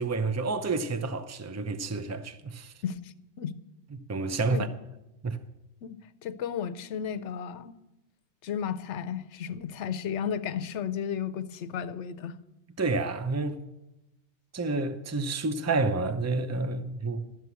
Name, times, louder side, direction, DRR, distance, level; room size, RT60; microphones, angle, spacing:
voice 1, 0.0-2.7 4.1-4.7 5.2-5.4 12.8-13.6 14.5-17.2, right 3 dB, 20° right, 0.6 m, -29 dB
voice 2, 2.8-3.6 4.5-4.7 5.8-7.7 8.4-12.4, left 8 dB, 90° left, 0.9 m, -34 dB
12.5 x 7.6 x 8.2 m
omnidirectional pair, 1.2 m